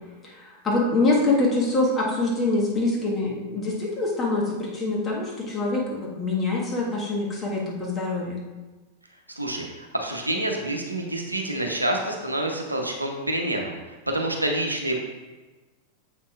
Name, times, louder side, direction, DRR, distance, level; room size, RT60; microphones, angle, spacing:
voice 1, 0.2-8.4, left 2 dB, 20° left, -4 dB, 1.5 m, -25 dB
voice 2, 9.4-13.8 14.1-15.0, right 1 dB, 85° right, 2 dB, 0.7 m, -27 dB
7.2 x 5.5 x 2.4 m, 1.2 s
figure-of-eight pair, 90°, 0 cm